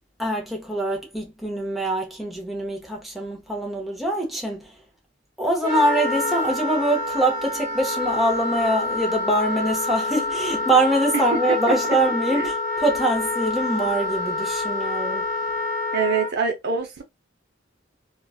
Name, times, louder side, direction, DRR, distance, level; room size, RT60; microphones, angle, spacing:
voice 1, 0.2-4.7 5.4-15.3, right 1 dB, ahead, 0.8 m, -24 dB
Wind instrument woodwind instrument, 5.6-16.3, left 2 dB, 40° left, 0.9 m, -27 dB
voice 2, 15.9-17.0, right 5 dB, 55° right, 0.8 m, -25 dB
3.0 x 2.4 x 2.4 m
head